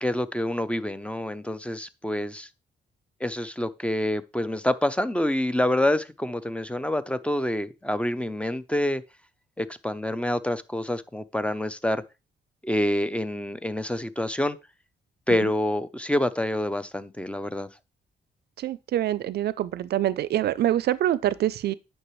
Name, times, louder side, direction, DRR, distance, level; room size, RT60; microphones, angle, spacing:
voice 1, 0.0-2.5 3.2-9.0 9.6-12.0 12.6-14.6 15.3-17.7, left 1 dB, 5° left, 0.5 m, -27 dB
voice 2, 18.6-21.7, right 12 dB, 70° right, 0.4 m, -25 dB
9.7 x 5.7 x 3.1 m
cardioid pair, 120°, 17 cm